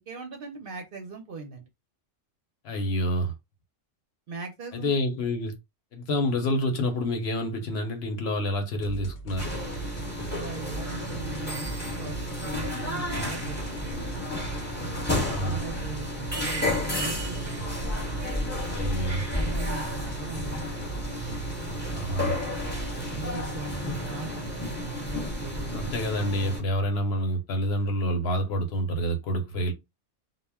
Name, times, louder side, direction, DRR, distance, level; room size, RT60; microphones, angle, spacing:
voice 1, 0.1-1.7 4.3-4.9 10.3-11.7 12.0-12.2 12.4-14.2 15.2-17.7 19.4-20.7 22.9-26.0, right 3 dB, 60° right, 0.7 m, -40 dB
voice 2, 2.6-3.3 4.7-5.5 5.9-9.5 15.3-15.6 18.7-19.3 21.9-22.4 25.7-29.7, equal, 65° left, 0.9 m, -28 dB
sound 1, 8.8-23.6, right 2 dB, 85° left, 1.0 m, -40 dB
sound 2, 9.4-26.6, equal, 10° left, 0.8 m, -32 dB
2.1 x 2.1 x 3.4 m
omnidirectional pair, 1.3 m